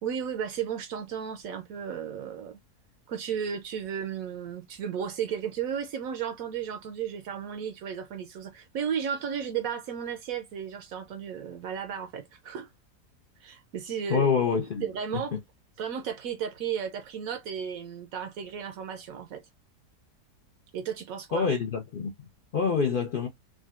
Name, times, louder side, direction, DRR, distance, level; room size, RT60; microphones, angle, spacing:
voice 1, 0.0-2.6 3.1-12.7 13.4-14.3 14.8-15.4 15.8-19.4 20.7-21.5, right 8 dB, 70° right, 0.9 m, -34 dB
voice 2, 14.1-14.8 15.1-15.2 21.3-22.1 22.5-23.3, left 5 dB, 70° left, 0.5 m, -26 dB
3.7 x 2.2 x 2.4 m
omnidirectional pair, 1.7 m